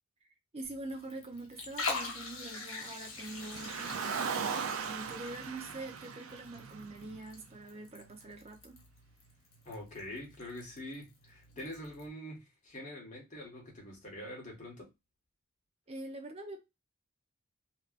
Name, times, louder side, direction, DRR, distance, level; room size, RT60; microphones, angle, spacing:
voice 1, 0.5-8.8 15.9-16.6, right 2 dB, 30° right, 0.7 m, -44 dB
Liquid, 0.6-12.1, left 3 dB, 80° left, 1.2 m, -45 dB
Car, 3.2-7.6, right 6 dB, 85° right, 0.5 m, -38 dB
voice 2, 9.6-14.9, left 1 dB, 40° left, 1.5 m, -45 dB
3.2 x 2.9 x 2.5 m
head